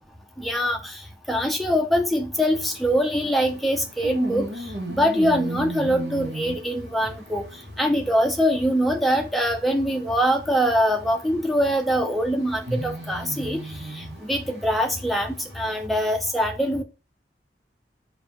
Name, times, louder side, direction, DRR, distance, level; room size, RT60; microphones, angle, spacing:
voice 1, 0.4-1.0 1.3-4.5 4.9-7.4 7.8-16.8, equal, ahead, 2 dB, 0.6 m, -23 dB
sound 1, 2.3-15.9, right 1 dB, 70° right, 1.2 m, -38 dB
4.1 x 2.7 x 4.2 m, 0.30 s
head